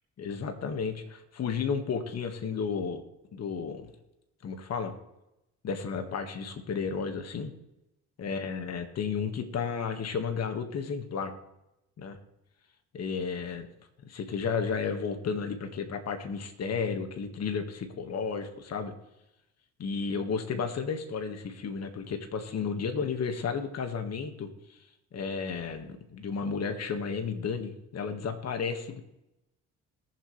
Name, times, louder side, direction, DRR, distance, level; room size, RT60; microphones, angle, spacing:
voice 1, 0.2-3.0 3.3-3.9 4.4-4.9 5.6-7.5 8.2-11.3 12.0-12.2 12.9-13.7 14.0-18.9 19.8-24.8 25.1-29.0, left 5 dB, 60° left, 6 dB, 1.8 m, -33 dB
21.0 x 7.6 x 3.3 m, 0.90 s
cardioid pair, 90°, 30 cm